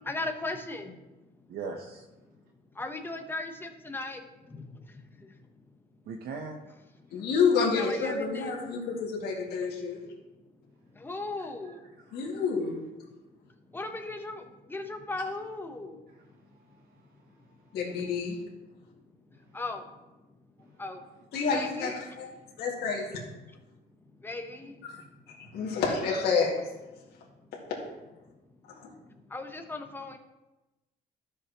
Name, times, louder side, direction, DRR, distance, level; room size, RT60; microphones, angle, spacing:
voice 1, 0.1-1.4 2.8-5.5 7.1-7.2 7.6-8.5 10.2-10.3 10.9-11.9 13.3-16.0 16.7-16.8 18.9-20.1 20.6-21.1 21.5-22.0 22.4-22.5 24.0-24.9 27.0-27.5 29.1-30.2, left 2 dB, 10° left, 5 dB, 1.0 m, -38 dB
voice 2, 1.5-2.0 6.1-6.6 11.4-11.8 16.1-16.2 16.5-17.0 17.4-17.8, right 4 dB, 70° right, 2 dB, 0.9 m, -41 dB
voice 3, 7.1-10.0 12.1-12.8 17.7-18.4 21.3-22.3 22.6-23.2 25.3-26.6 27.5-27.6 28.7-28.9, left 5 dB, 70° left, -3 dB, 2.1 m, -29 dB
13.0 x 6.2 x 3.0 m, 1.1 s
cardioid pair, 110°, 17 cm